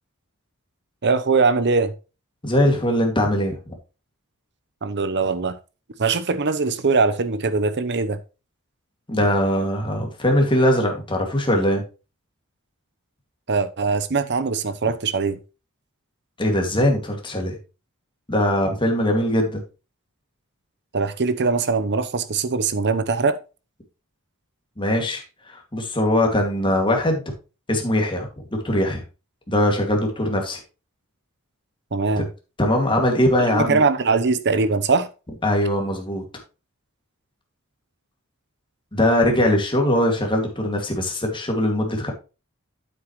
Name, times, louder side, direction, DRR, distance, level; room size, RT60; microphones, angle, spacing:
voice 1, 1.0-1.9 4.8-5.6 6.0-8.2 13.5-15.4 20.9-23.4 31.9-32.3 33.5-35.1, right 4 dB, 50° right, 0.8 m, -21 dB
voice 2, 2.4-3.6 9.1-11.8 16.4-17.6 18.3-19.6 24.8-27.2 27.7-29.0 29.5-30.6 32.6-33.8 35.4-36.2 38.9-42.1, left 1 dB, 25° left, 2.2 m, -21 dB
9.5 x 7.7 x 3.1 m
head